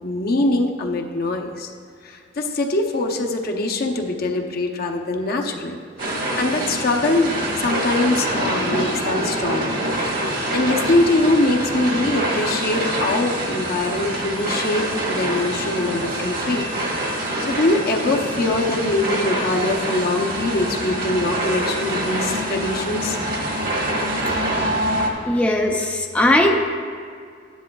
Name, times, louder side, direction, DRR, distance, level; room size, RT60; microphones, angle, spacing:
voice 1, 0.0-1.7 2.0-5.8 6.4-9.8 10.5-16.7 17.4-23.2 24.3-24.4, left 2 dB, 55° left, 2 dB, 0.8 m, -23 dB
sound 1, 6.0-25.1, right 1 dB, 50° right, 1.4 m, -25 dB
voice 2, 25.2-26.6, left 1 dB, 10° left, 0 dB, 0.5 m, -19 dB
13.0 x 10.0 x 2.3 m, 2.2 s
head